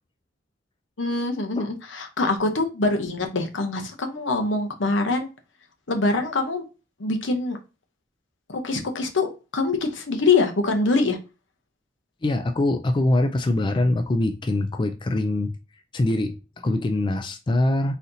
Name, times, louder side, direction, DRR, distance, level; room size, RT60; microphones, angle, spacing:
voice 1, 1.0-5.3 5.9-6.6 7.0-7.6 8.5-11.2, left 3 dB, 75° left, 0.8 m, -24 dB
voice 2, 12.2-15.6 15.9-18.0, left 1 dB, 25° left, 0.3 m, -23 dB
4.1 x 2.7 x 3.8 m
head